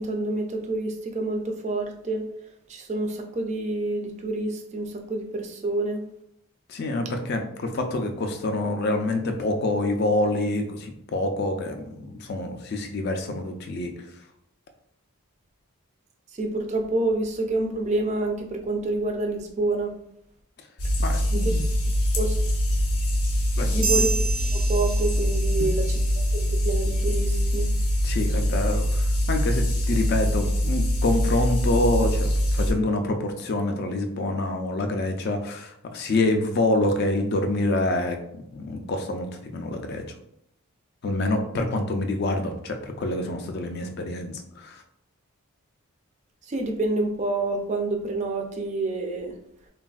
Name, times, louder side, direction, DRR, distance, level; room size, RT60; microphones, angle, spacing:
voice 1, 0.0-2.2 2.7-6.0 16.3-19.9 21.3-21.5 22.1-22.4 23.7-24.1 24.7-27.7 46.4-49.4, right 2 dB, 30° right, 4 dB, 0.3 m, -28 dB
voice 2, 6.7-14.0 21.0-21.6 23.6-23.9 28.0-38.2 38.5-39.3 39.5-40.1 41.0-44.8, left 2 dB, 45° left, 5 dB, 0.4 m, -26 dB
sound 1, 20.8-32.7, equal, 90° left, 0.7 m, -23 dB
sound 2, 23.8-25.7, right 4 dB, 80° right, 0.6 m, -29 dB
3.4 x 2.3 x 2.3 m, 0.75 s
head